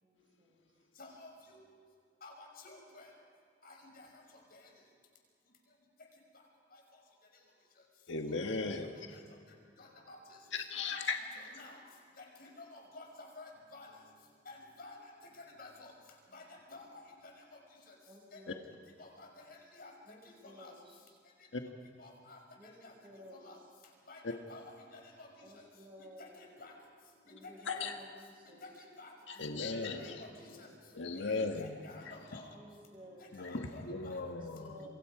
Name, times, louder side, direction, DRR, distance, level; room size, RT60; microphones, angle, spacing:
voice 1, 0.0-0.6 8.2-8.3 16.3-16.4 18.1-18.7 20.1-21.2 22.6-23.5 25.4-26.4 27.3-28.6 29.3-30.6 31.0-31.5 32.5-33.3 34.5-34.9, equal, 30° right, 1 dB, 5.6 m, -55 dB
voice 2, 1.0-1.6 2.2-3.1 3.6-4.2 4.5-4.7 6.3-6.4 6.7-6.8 8.3-8.4 8.8-8.9 9.8-10.4 10.8-11.8 12.2-14.0 14.5-15.9 16.3-17.6 17.9-18.0 18.3-18.4 19.0-19.9 20.2-20.7 22.0-22.4 22.8-22.9 23.3-23.6 24.1-25.7 26.2-26.7 27.3-27.9 28.4-29.1 29.6-30.7 31.1-32.6 33.2-34.2 34.8-34.9, left 2 dB, 55° left, 1 dB, 5.8 m, -52 dB
voice 3, 8.1-9.2 10.5-11.2 21.5-21.6 24.2-24.3 27.7-27.9 29.3-30.2 30.9-31.8 33.3-34.8, left 3 dB, 85° left, 4 dB, 1.6 m, -37 dB
27.5 x 23.5 x 5.0 m, 2.3 s
head